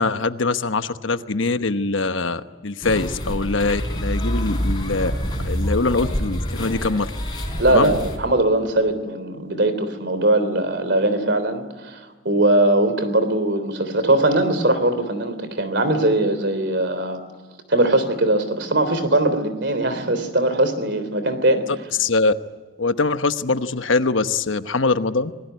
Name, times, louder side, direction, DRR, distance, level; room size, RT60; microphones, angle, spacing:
voice 1, 0.0-5.1 5.4-7.1 7.7-7.9 22.0-22.3 22.8-25.3, left 3 dB, 75° left, 10 dB, 1.1 m, -22 dB
sound 1, 2.8-8.2, equal, 20° left, 4.6 m, -26 dB
voice 2, 7.6-17.2 17.7-21.7, right 1 dB, 60° right, 11 dB, 3.4 m, -20 dB
26.5 x 20.5 x 9.3 m, 1.3 s
head